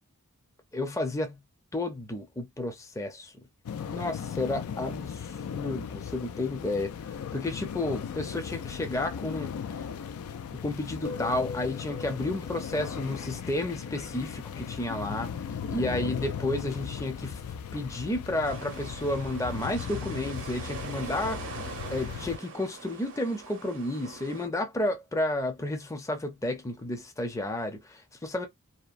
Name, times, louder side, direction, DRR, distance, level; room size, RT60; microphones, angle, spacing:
voice 1, 0.7-1.4 1.7-3.3 3.9-9.6 10.5-17.4 17.7-28.5, left 2 dB, 15° left, 0.5 m, -32 dB
sound 1, 3.6-22.4, left 7 dB, 80° left, 0.3 m, -37 dB
sound 2, 11.0-18.5, left 3 dB, 60° left, 0.8 m, -46 dB
sound 3, 18.4-24.5, right 4 dB, 60° right, 0.6 m, -42 dB
2.8 x 2.0 x 2.4 m
head